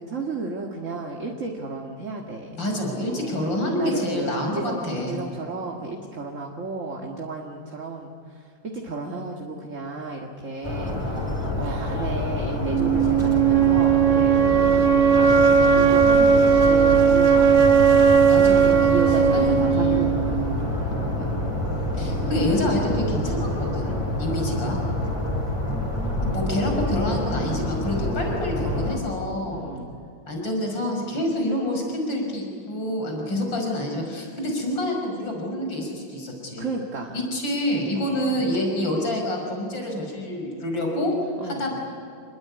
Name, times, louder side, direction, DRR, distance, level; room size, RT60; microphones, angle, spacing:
voice 1, 0.1-2.6 3.1-8.5 8.8-11.3 11.5-15.4 15.7-17.8 18.6-21.3 27.8-28.1 29.5-30.0 36.6-37.2 37.9-38.3 41.4-41.7, right 3 dB, 40° right, 0 dB, 2.3 m, -33 dB
voice 2, 2.6-5.2 18.3-18.9 19.3-20.2 22.0-24.8 26.2-29.7 30.3-36.7 37.1-41.1 41.4-41.7, left 1 dB, 65° left, 1 dB, 6.3 m, -27 dB
sound 1, 10.6-29.0, left 1 dB, 15° left, 4.5 m, -27 dB
sound 2, 12.6-20.6, right 7 dB, 65° right, 1.9 m, -17 dB
28.0 x 21.5 x 9.6 m, 2.5 s
omnidirectional pair, 2.2 m